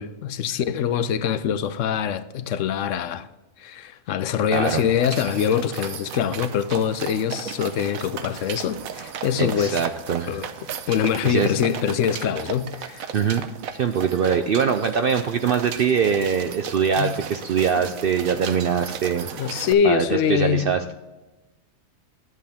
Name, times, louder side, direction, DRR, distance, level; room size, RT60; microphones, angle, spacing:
voice 1, 0.0-3.3 3.6-9.8 10.3-10.5 10.9-13.1 17.0-17.1 19.4-20.7, left 8 dB, 70° left, 0.9 m, -24 dB
voice 2, 4.5-4.8 9.4-10.3 11.2-11.5 13.1-20.9, right 7 dB, 65° right, 0.6 m, -23 dB
sound 1, 4.5-19.7, right 8 dB, 85° right, 1.2 m, -36 dB
11.0 x 7.5 x 3.5 m
omnidirectional pair, 1.4 m